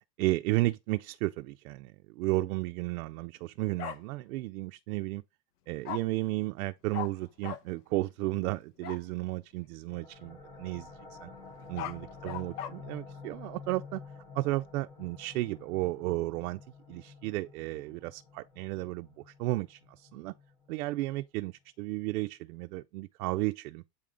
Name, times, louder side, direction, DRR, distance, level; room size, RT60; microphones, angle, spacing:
voice 1, 0.2-5.2 5.7-11.3 11.7-14.0 14.3-16.6 16.9-20.3 20.7-23.8, right 19 dB, 65° right, 0.5 m, -33 dB
Bark, 3.8-4.0 5.8-6.0 6.9-7.1 7.4-7.6 8.8-9.0 11.5-12.7, left 10 dB, 70° left, 1.0 m, -37 dB
sound 1, 9.9-21.3, left 4 dB, 10° left, 0.4 m, -50 dB
8.5 x 3.5 x 3.7 m
supercardioid pair, 170°, 48 cm